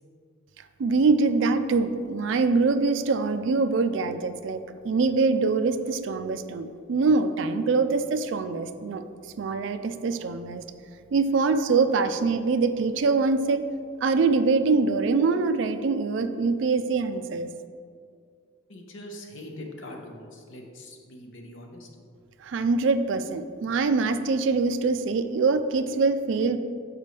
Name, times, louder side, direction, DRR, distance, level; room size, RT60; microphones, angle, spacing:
voice 1, 0.8-9.0 9.4-10.6 11.1-13.7 14.0-17.5 22.4-26.6, right 4 dB, 65° right, 10 dB, 0.3 m, -24 dB
voice 2, 18.7-21.9, left 1 dB, 70° left, 2 dB, 0.8 m, -42 dB
6.7 x 5.3 x 3.2 m, 2.2 s
head